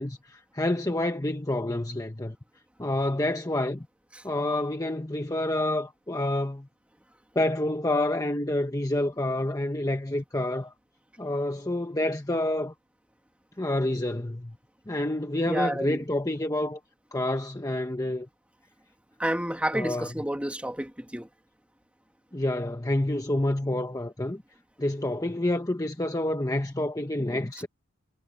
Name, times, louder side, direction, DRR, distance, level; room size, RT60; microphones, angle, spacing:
voice 1, 0.0-2.4 2.8-3.9 4.2-6.7 7.3-10.7 11.2-12.7 13.6-14.6 14.9-16.8 17.1-18.3 19.7-20.1 22.3-24.4 24.8-27.7, left 1 dB, 15° left, 1.1 m, -28 dB
voice 2, 15.5-16.0 19.2-21.3, right 1 dB, 5° right, 2.9 m, -30 dB
head